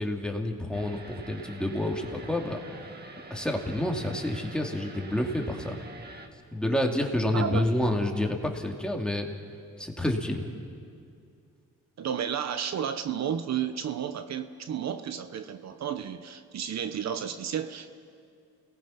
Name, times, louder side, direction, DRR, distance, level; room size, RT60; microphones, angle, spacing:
voice 1, 0.0-2.6 3.3-5.8 6.5-9.3 9.8-10.5, left 1 dB, 5° left, 2 dB, 2.8 m, -29 dB
sound 1, 0.7-6.3, right 3 dB, 35° right, 2.2 m, -46 dB
voice 2, 7.3-7.6 12.0-17.9, right 8 dB, 60° right, 9 dB, 1.1 m, -32 dB
29.0 x 19.0 x 5.9 m, 2.4 s
cardioid pair, 90°, 30 cm